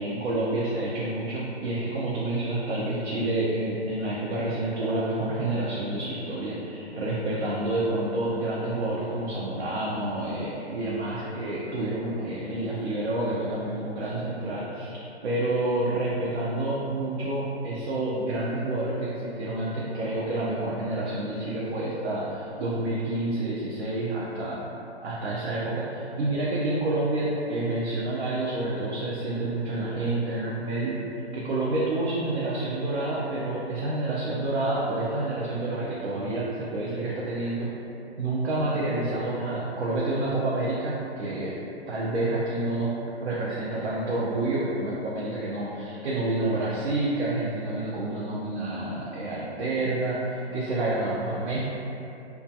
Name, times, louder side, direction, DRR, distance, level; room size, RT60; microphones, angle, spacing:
voice 1, 0.0-15.0 15.2-24.6 25.0-31.0 31.3-37.7 38.2-41.6 41.9-42.9 43.2-51.6, right 2 dB, 75° right, -7 dB, 0.6 m, -28 dB
2.3 x 2.1 x 2.6 m, 2.8 s
hypercardioid pair, 150°, 33 cm